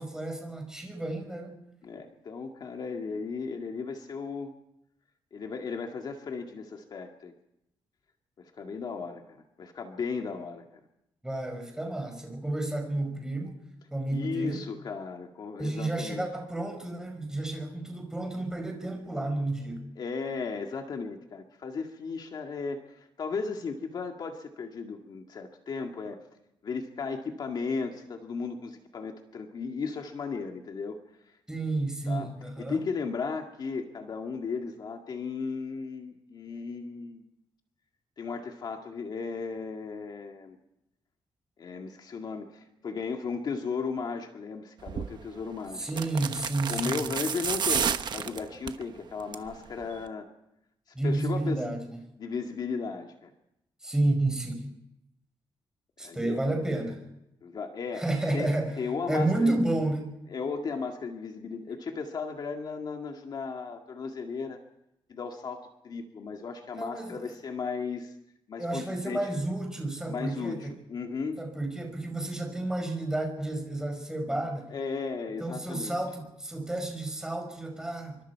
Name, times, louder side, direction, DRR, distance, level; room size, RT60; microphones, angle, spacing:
voice 1, 0.0-1.6 11.2-13.6 13.9-14.6 15.6-19.9 31.5-32.8 45.7-47.1 50.9-52.0 53.8-54.7 56.0-57.0 57.9-58.7 59.1-60.2 66.7-67.2 68.6-70.7 71.4-74.7 75.4-78.2, right 2 dB, 5° right, 4 dB, 5.3 m, -31 dB
voice 2, 1.8-4.5 5.3-7.3 8.6-10.6 14.1-16.3 20.0-26.2 26.6-31.0 31.2-31.4 32.1-32.3 32.6-37.2 38.2-40.6 41.6-46.1 46.7-50.3 51.0-51.6 52.2-53.3 56.0-56.4 57.4-58.1 58.3-58.5 58.8-59.6 60.3-64.6 65.1-68.2 68.5-69.2 70.1-71.4 74.7-76.0, left 5 dB, 50° left, 3 dB, 2.0 m, -35 dB
sound 1, 44.9-45.1 45.9-48.8 49.2-49.5 49.8-49.9, right 7 dB, 55° right, 1.1 m, -30 dB
26.5 x 24.5 x 4.7 m, 0.85 s
wide cardioid pair, 165°, 9 cm